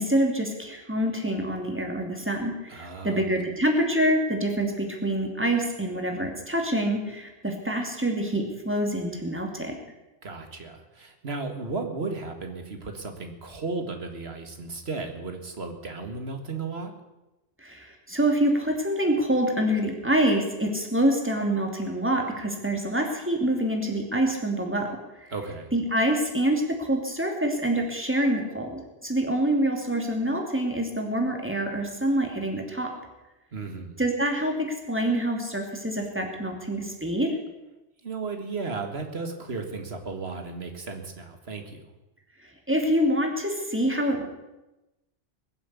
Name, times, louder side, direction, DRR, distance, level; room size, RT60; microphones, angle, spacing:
voice 1, 0.0-9.7 17.6-24.9 25.2-25.3 25.7-32.9 34.0-37.3 42.4-44.3, right 1 dB, 10° right, 2 dB, 2.7 m, -26 dB
voice 2, 2.7-3.2 10.2-16.9 25.3-25.7 33.5-34.0 38.0-41.9, right 3 dB, 65° right, 5 dB, 2.1 m, -34 dB
21.5 x 7.7 x 8.3 m, 1.0 s
omnidirectional pair, 1.2 m